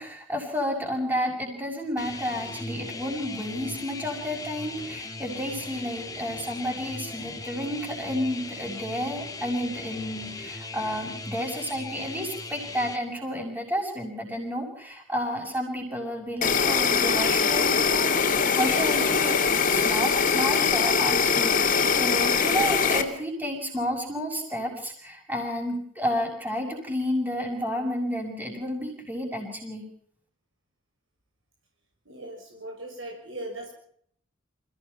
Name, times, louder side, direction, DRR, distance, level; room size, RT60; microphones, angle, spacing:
voice 1, 0.0-29.9, equal, 10° right, -5 dB, 6.7 m, -31 dB
sound 1, 2.0-13.0, left 3 dB, 20° left, 2.6 m, -38 dB
Insect, 16.4-23.0, left 5 dB, 45° left, 2.6 m, -22 dB
voice 2, 32.0-33.7, right 1 dB, 70° right, 0 dB, 6.4 m, -39 dB
28.0 x 17.5 x 5.7 m, 0.64 s
head